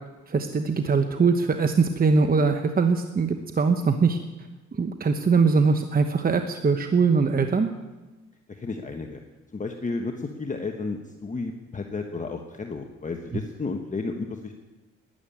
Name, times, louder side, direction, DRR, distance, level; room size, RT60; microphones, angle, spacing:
voice 1, 0.3-4.2 4.7-7.7, right 4 dB, 30° right, 7 dB, 1.0 m, -22 dB
voice 2, 8.5-9.2 9.5-14.5, left 3 dB, 25° left, 4 dB, 1.3 m, -32 dB
12.5 x 11.0 x 8.7 m, 1.2 s
cardioid pair, 90°, 30 cm